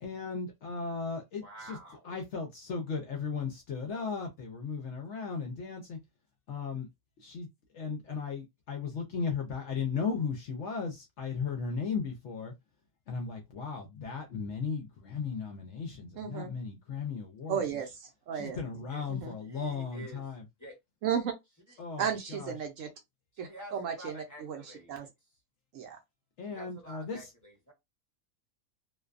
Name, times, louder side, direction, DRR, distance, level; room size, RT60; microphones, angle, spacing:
voice 1, 0.0-1.8 2.0-6.0 6.5-6.9 7.2-7.5 7.7-12.5 13.1-17.6 18.3-20.4 21.8-22.5 26.4-27.3, left 5 dB, 65° left, 0.7 m, -36 dB
voice 2, 1.4-2.1 18.9-19.1 19.4-20.2 20.6-20.8 21.7-21.8 23.3-25.1 26.4-27.7, right 1 dB, 15° left, 0.8 m, -49 dB
voice 3, 16.2-16.5 17.5-18.6 19.1-19.3 21.0-21.3 22.0-22.9 23.4-24.6 24.9-25.1 25.7-26.0, right 8 dB, 70° right, 0.8 m, -34 dB
2.5 x 2.2 x 2.4 m
omnidirectional pair, 1.6 m